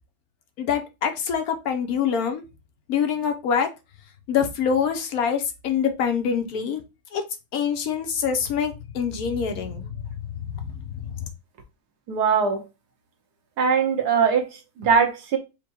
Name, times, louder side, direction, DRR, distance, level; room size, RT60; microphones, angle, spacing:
voice 1, 0.6-2.4 2.9-3.7 4.3-6.8 7.1-7.2 7.5-9.8 10.6-11.2, left 7 dB, 70° left, 1.2 m, -25 dB
voice 2, 12.1-12.6 13.6-15.4, right 6 dB, 90° right, 1.5 m, -21 dB
4.4 x 2.2 x 4.3 m
omnidirectional pair, 1.6 m